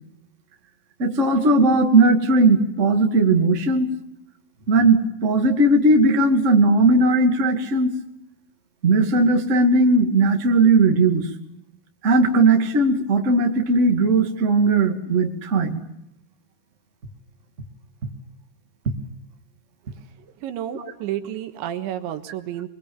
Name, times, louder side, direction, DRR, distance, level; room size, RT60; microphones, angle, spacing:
voice 1, 1.0-3.9 4.7-7.9 8.8-11.3 12.0-15.8 20.7-20.9, right 2 dB, 30° right, 3 dB, 1.4 m, -18 dB
voice 2, 20.4-22.7, right 11 dB, 85° right, 8 dB, 3.7 m, -30 dB
23.5 x 22.5 x 7.2 m, 0.83 s
omnidirectional pair, 5.2 m